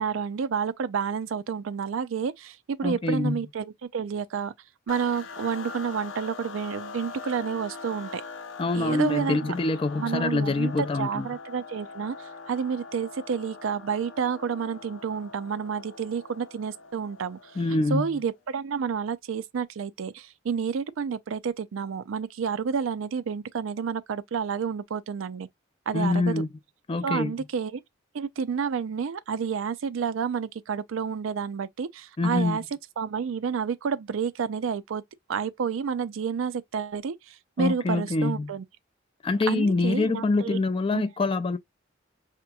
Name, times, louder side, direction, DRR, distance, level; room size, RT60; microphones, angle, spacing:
voice 1, 0.0-4.5 4.9-8.2 8.7-9.5 10.0-17.5 17.9-25.5 25.9-26.4 27.0-27.8 28.1-32.6 33.0-35.0 35.3-38.6 39.5-40.6 40.9-41.0, right 6 dB, 80° right, 0.4 m, -30 dB
voice 2, 2.8-3.4 8.6-11.3 17.6-18.1 25.9-26.5 26.9-27.3 32.2-32.6 37.6-38.5 39.2-41.6, left 3 dB, 25° left, 0.3 m, -25 dB
sound 1, 4.9-18.3, left 4 dB, 75° left, 0.6 m, -42 dB
4.9 x 2.9 x 2.2 m
head